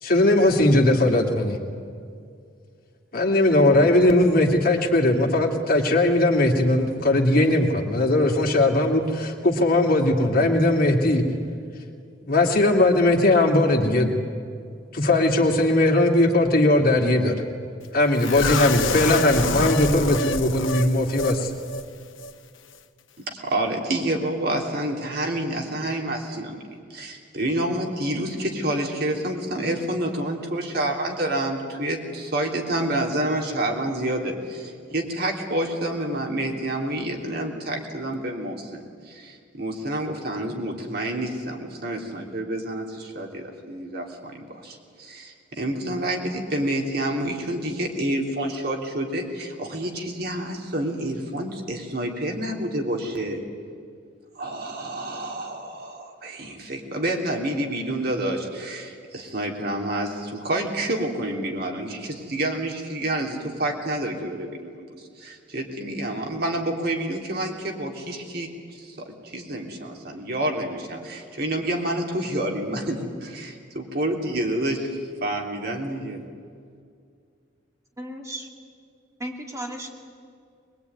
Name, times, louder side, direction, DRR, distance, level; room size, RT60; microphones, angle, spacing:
voice 1, 0.0-1.6 3.1-11.2 12.2-14.1 14.9-17.4 17.9-21.5, left 1 dB, 50° left, 2 dB, 2.5 m, -19 dB
sound 1, 18.2-21.4 21.7-21.8 22.2-22.3, left 3 dB, 85° left, 1.3 m, -27 dB
voice 2, 23.3-26.6 26.9-53.4 54.3-76.2, right 1 dB, 55° right, 1 dB, 3.3 m, -28 dB
voice 3, 78.0-78.5 79.2-79.9, right 1 dB, 15° right, 0 dB, 2.9 m, -34 dB
22.0 x 22.0 x 9.5 m, 2.3 s
head